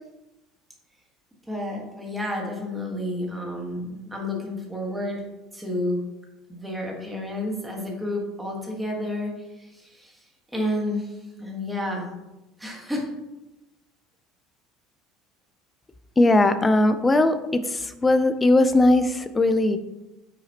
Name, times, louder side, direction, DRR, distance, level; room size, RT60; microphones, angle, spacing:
voice 1, 1.5-5.2 5.5-6.0 6.5-10.2 10.5-12.1 12.6-13.1, left 1 dB, 5° right, -2 dB, 1.4 m, -30 dB
voice 2, 16.2-19.8, left 2 dB, 10° left, 10 dB, 0.4 m, -19 dB
9.1 x 5.9 x 2.9 m, 0.99 s
cardioid pair, 170°, 0 cm